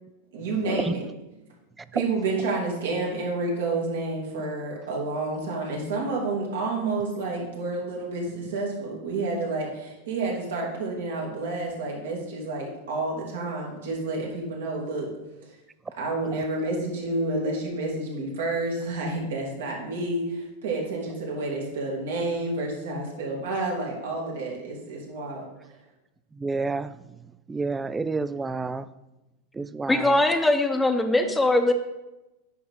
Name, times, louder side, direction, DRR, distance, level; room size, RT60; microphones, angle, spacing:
voice 1, 0.3-1.0 1.9-15.1 15.4-15.6 16.0-25.5, right 2 dB, 75° right, -2 dB, 2.5 m, -29 dB
voice 2, 26.4-27.0 27.5-28.9 29.5-30.2, right 3 dB, 15° right, 16 dB, 0.4 m, -29 dB
voice 3, 29.9-31.7, left 2 dB, 10° left, 7 dB, 0.9 m, -21 dB
9.3 x 5.9 x 3.8 m, 0.99 s
hypercardioid pair, 100°, 0 cm